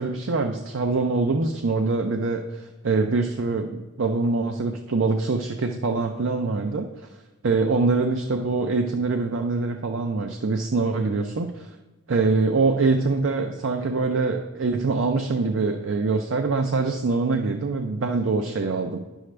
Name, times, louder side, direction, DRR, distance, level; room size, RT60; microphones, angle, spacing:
voice 1, 0.0-6.9 7.4-11.7 12.1-19.0, right 3 dB, 80° right, 5 dB, 0.5 m, -24 dB
10.0 x 6.4 x 3.3 m, 1.2 s
head